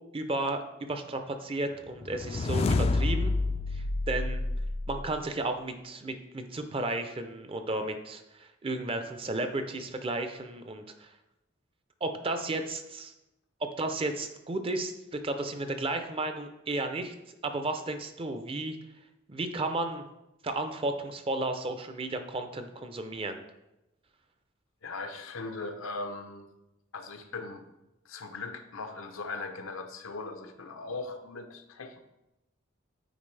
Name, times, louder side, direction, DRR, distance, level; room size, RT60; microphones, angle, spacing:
voice 1, 0.1-3.3 3.7-4.4 4.9-11.1 12.0-13.1 13.8-17.1 17.4-18.8 19.3-20.0 20.4-23.4, right 2 dB, 25° right, 7 dB, 0.5 m, -33 dB
sound 1, 2.0-5.3, left 2 dB, 30° left, 0.3 m, -29 dB
voice 2, 24.8-26.5 26.9-27.7 28.0-32.0, left 3 dB, 85° left, 6 dB, 0.8 m, -39 dB
8.8 x 4.5 x 3.3 m, 0.93 s
head